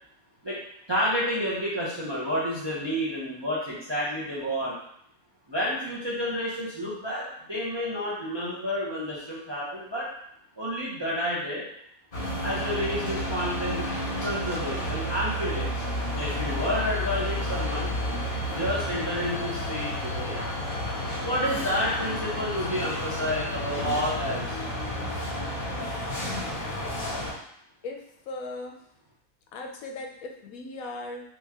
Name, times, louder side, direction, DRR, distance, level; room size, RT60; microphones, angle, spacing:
voice 1, 0.9-4.8 5.5-10.1 10.6-11.6 12.4-13.9 14.2-15.9 16.1-17.9 18.5-20.4 21.2-24.7, equal, 30° right, -7 dB, 0.5 m, -30 dB
sound 1, 12.1-27.3, left 1 dB, 40° left, 1.4 m, -31 dB
voice 2, 28.3-28.7 29.5-31.2, left 2 dB, 80° left, 2 dB, 1.0 m, -37 dB
3.0 x 2.8 x 3.5 m, 0.71 s
omnidirectional pair, 1.5 m